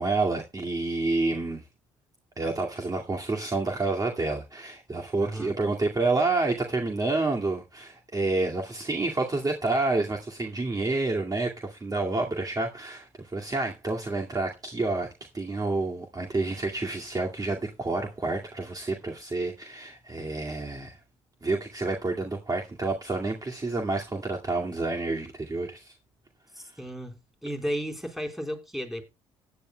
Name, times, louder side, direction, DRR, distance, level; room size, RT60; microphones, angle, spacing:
voice 1, 0.0-1.6 2.4-15.1 15.3-21.0 21.4-25.9, right 3 dB, 25° right, 2.3 m, -29 dB
voice 2, 5.2-5.5 26.5-29.0, equal, ahead, 4.2 m, -34 dB
16.5 x 10.0 x 2.3 m
supercardioid pair, 65°, 14 cm